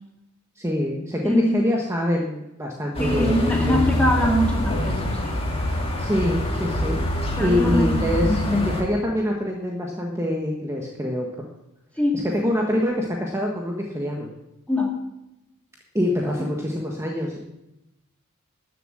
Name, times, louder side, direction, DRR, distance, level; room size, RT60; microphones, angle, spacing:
voice 1, 0.6-3.8 6.0-11.3 12.3-14.3 15.9-17.4, left 1 dB, 15° right, -1 dB, 1.3 m, -25 dB
voice 2, 1.2-1.5 3.0-5.4 7.4-8.7 12.0-12.2 14.7-14.9, left 1 dB, 5° left, -1 dB, 2.4 m, -23 dB
sound 1, 2.9-8.8, left 1 dB, 25° left, 2.3 m, -25 dB
13.0 x 7.3 x 7.4 m, 0.91 s
head